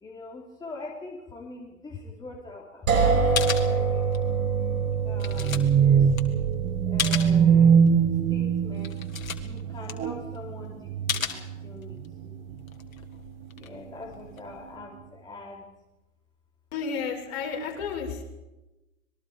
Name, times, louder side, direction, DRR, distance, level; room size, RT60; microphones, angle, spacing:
voice 1, 0.0-4.1 5.0-6.1 6.9-7.8 8.3-8.9 9.3-12.0 12.2-12.6 13.6-15.6, left 3 dB, 10° left, -2 dB, 3.4 m, -43 dB
sound 1, 2.9-12.6, right 5 dB, 80° right, 6.4 m, -28 dB
sound 2, 3.4-4.4 4.7-7.4 7.9-8.0 8.4-8.5 8.7-10.5 11.1-12.1 12.5-14.8, left 7 dB, 75° left, 2.5 m, -34 dB
sound 3, 4.2-9.3 9.9-10.4 10.7-11.4 11.9-12.1 12.5-12.6, right 7 dB, 20° right, 1.5 m, -22 dB
voice 2, 16.7-18.2, left 5 dB, 50° left, -1 dB, 7.1 m, -32 dB
26.0 x 21.0 x 5.1 m, 1.0 s
hypercardioid pair, 125°, 41 cm